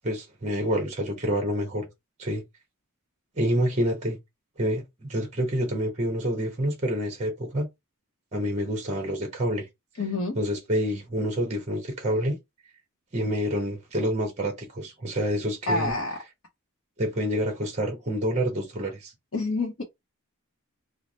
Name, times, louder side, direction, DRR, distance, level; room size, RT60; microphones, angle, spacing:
voice 1, 0.0-1.9 2.2-2.4 3.4-4.2 4.6-7.7 8.3-9.6 10.4-12.4 13.1-15.9 17.0-19.1, equal, 30° right, 0.9 m, -27 dB
voice 2, 10.0-10.4 15.7-16.2 19.3-19.8, left 2 dB, 65° left, 0.7 m, -27 dB
3.2 x 2.0 x 3.9 m
head